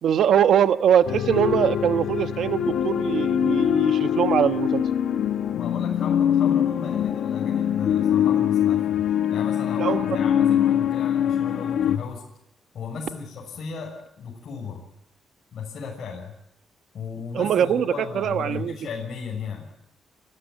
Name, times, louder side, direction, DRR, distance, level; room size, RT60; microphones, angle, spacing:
voice 1, 0.0-4.8 9.8-10.0 17.3-18.7, right 9 dB, 75° right, 10 dB, 1.1 m, -22 dB
sound 1, 1.0-12.0, left 9 dB, 80° left, 1.4 m, -23 dB
voice 2, 5.5-12.2 12.7-14.9 15.5-16.3 16.9-19.7, left 6 dB, 65° left, -2 dB, 6.6 m, -35 dB
27.5 x 14.5 x 9.6 m, 0.84 s
cardioid pair, 110°, 0 cm